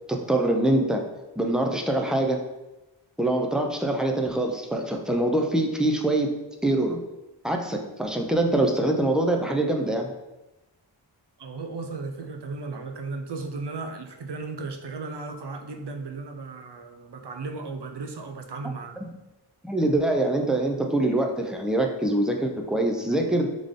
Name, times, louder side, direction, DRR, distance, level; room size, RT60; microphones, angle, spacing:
voice 1, 0.1-1.1 1.4-2.5 3.2-6.3 6.6-7.0 7.4-10.1 19.0-19.1 19.6-23.5, right 1 dB, ahead, 2 dB, 0.5 m, -24 dB
voice 2, 11.4-19.0, right 3 dB, 65° right, 4 dB, 0.7 m, -35 dB
3.7 x 3.5 x 3.6 m, 1.0 s
wide cardioid pair, 95°, 45 cm